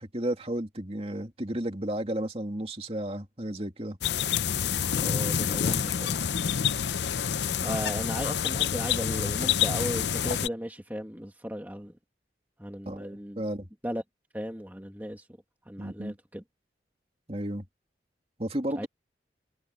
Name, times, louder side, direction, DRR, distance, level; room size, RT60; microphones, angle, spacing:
voice 1, 0.0-4.0 12.9-13.7 15.8-16.2 17.3-17.6 18.4-18.9, right 1 dB, 35° right, 2.7 m, -33 dB
sound 1, 4.0-10.5, left 8 dB, 75° left, 0.6 m, -27 dB
voice 2, 4.9-6.3 7.6-11.9 12.6-13.4 13.8-14.0 14.3-15.3 15.7-16.4 18.8-18.9, equal, 10° right, 2.1 m, -36 dB
head